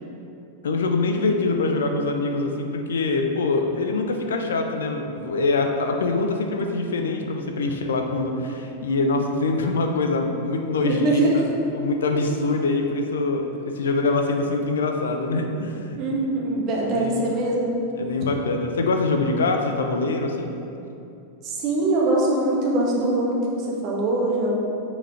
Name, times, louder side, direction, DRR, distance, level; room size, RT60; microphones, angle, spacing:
voice 1, 0.6-11.4 11.7-16.0 17.0-17.2 18.0-20.6, left 3 dB, 65° left, 4 dB, 0.6 m, -24 dB
voice 2, 10.8-11.4 15.9-17.8 21.4-24.6, right 2 dB, 35° right, -3 dB, 1.7 m, -23 dB
7.4 x 5.4 x 4.9 m, 2.8 s
figure-of-eight pair, 90°, 0 cm